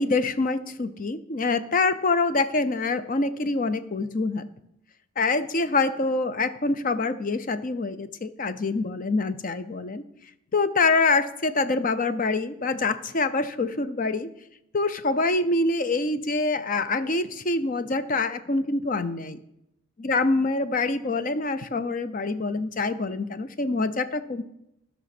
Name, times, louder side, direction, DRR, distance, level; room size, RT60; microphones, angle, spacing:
voice 1, 0.0-4.4 5.2-10.0 10.5-14.3 14.7-19.4 20.0-24.4, left 3 dB, 40° left, 12 dB, 0.5 m, -25 dB
12.0 x 6.2 x 5.9 m, 0.83 s
head